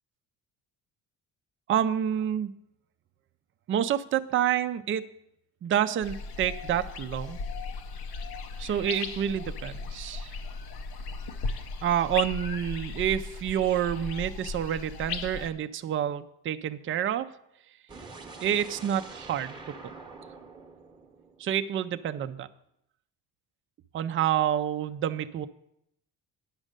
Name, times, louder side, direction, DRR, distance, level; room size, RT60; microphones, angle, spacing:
voice 1, 1.7-2.5 3.7-5.0 5.6-7.4 8.6-10.3 11.8-17.3 18.4-19.7 21.4-22.5 23.9-25.5, right 10 dB, 35° right, 9 dB, 0.4 m, -28 dB
sound 1, 6.0-15.5, left 4 dB, 70° left, 0.9 m, -37 dB
sound 2, 17.9-21.9, right 4 dB, 10° right, 0.9 m, -46 dB
9.8 x 6.2 x 6.5 m, 0.77 s
cardioid pair, 160°, 39 cm